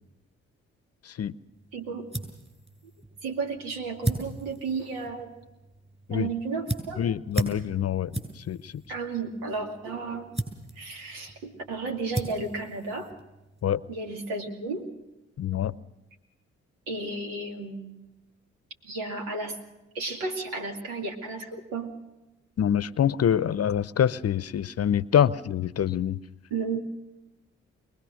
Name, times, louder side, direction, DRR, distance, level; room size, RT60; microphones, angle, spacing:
sound 1, 1.5-13.7, right 1 dB, 20° right, 7.4 m, -37 dB
voice 1, 1.7-2.1 3.2-5.3 6.1-7.0 8.9-10.3 10.8-13.1 13.9-14.8 16.9-18.0 18.8-19.6 19.9-21.9 26.5-26.8, right 4 dB, 80° right, 3 dB, 2.6 m, -33 dB
voice 2, 7.0-8.7 13.6-13.8 15.4-15.7 22.6-26.2, left 9 dB, 50° left, 19 dB, 0.7 m, -25 dB
23.5 x 19.5 x 6.4 m, 0.99 s
hypercardioid pair, 40°, 33 cm